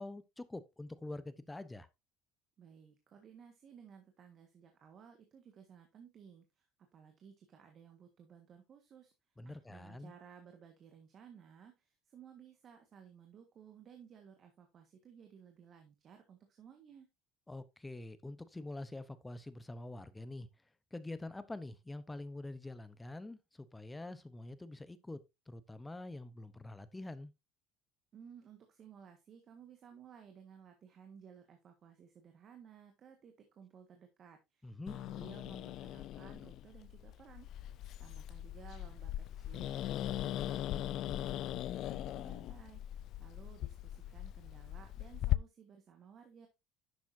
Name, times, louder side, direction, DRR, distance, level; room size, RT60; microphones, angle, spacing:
voice 1, 0.0-1.9 9.4-10.1 17.5-20.5 20.9-25.2 25.5-27.3 34.6-35.0, left 2 dB, 10° left, 0.9 m, -46 dB
voice 2, 2.6-9.1 9.4-17.1 28.1-46.5, right 7 dB, 40° right, 1.6 m, -57 dB
Growling, 34.9-45.4, left 13 dB, 55° left, 0.5 m, -39 dB
10.5 x 7.1 x 2.7 m
cardioid pair, 125°, 0 cm